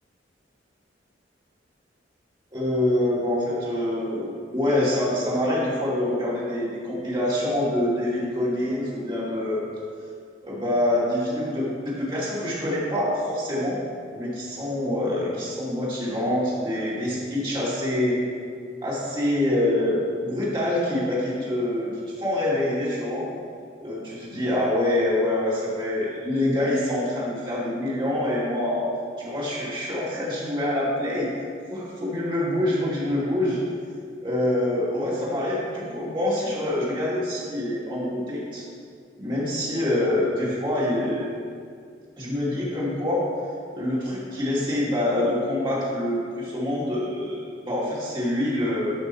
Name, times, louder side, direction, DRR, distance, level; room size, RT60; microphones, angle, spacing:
voice 1, 2.5-9.6 10.4-13.8 14.1-18.2 18.8-23.3 23.8-28.9 29.2-31.3 31.7-33.6 34.2-38.6 39.2-41.3 42.2-43.3 43.7-48.9, left 1 dB, 25° right, -8 dB, 2.7 m, -25 dB
11.5 x 5.9 x 4.5 m, 2.2 s
head